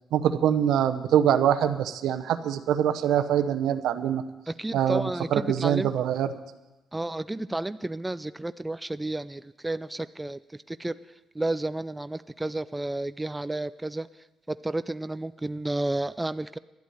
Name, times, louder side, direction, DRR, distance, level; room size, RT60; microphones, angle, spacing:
voice 1, 0.1-4.2 4.7-5.0 5.3-6.3, right 10 dB, 80° right, 10 dB, 0.8 m, -24 dB
voice 2, 4.5-5.9 6.9-10.4 10.7-11.0 11.4-14.1 14.5-16.6, right 2 dB, 10° right, 14 dB, 0.4 m, -31 dB
12.0 x 8.3 x 9.2 m, 1.1 s
cardioid pair, 90°, 0 cm